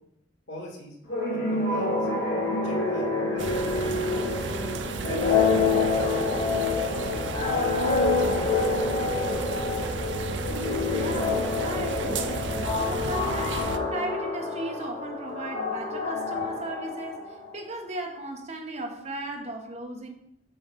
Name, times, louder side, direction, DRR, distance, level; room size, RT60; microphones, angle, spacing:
voice 1, 0.5-1.0 1.3-2.0 2.6-4.5 5.0-7.6 8.0-9.5 10.3-10.4, left 1 dB, 90° left, 2.7 m, -41 dB
sound 1, 1.1-17.5, left 3 dB, 65° left, 3.4 m, -27 dB
sound 2, 3.4-13.8, right 3 dB, 80° right, 0.7 m, -33 dB
voice 2, 10.9-20.1, right 2 dB, 35° right, 1.4 m, -36 dB
7.9 x 5.9 x 5.3 m
head